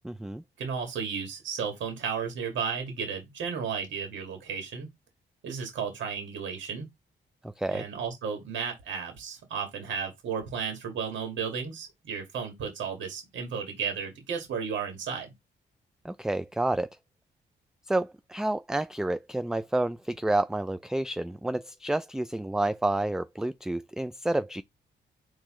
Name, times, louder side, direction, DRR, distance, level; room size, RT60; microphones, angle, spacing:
voice 1, 0.0-0.4 7.4-7.9 16.0-16.9 17.9-24.6, right 2 dB, 5° right, 0.3 m, -29 dB
voice 2, 0.6-4.9 5.4-6.9 7.7-15.3, right 6 dB, 85° right, 1.8 m, -33 dB
4.5 x 3.1 x 3.6 m
cardioid pair, 80°, 19 cm